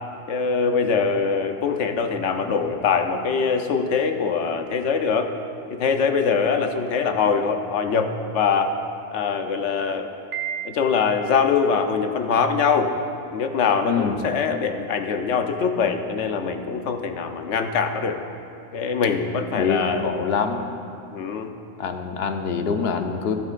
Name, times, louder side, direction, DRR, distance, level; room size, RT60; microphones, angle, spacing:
voice 1, 0.3-5.3 5.7-8.7 9.1-10.1 10.6-13.0 13.3-18.2 18.7-20.1 21.1-21.5, left 5 dB, 90° left, 6 dB, 1.1 m, -23 dB
Piano, 10.3-11.4, right 8 dB, 90° right, 1.2 m, -32 dB
voice 2, 13.8-14.2 19.6-20.7 21.8-23.4, left 5 dB, 65° left, 6 dB, 0.9 m, -25 dB
14.5 x 12.5 x 2.5 m, 2.7 s
omnidirectional pair, 1.2 m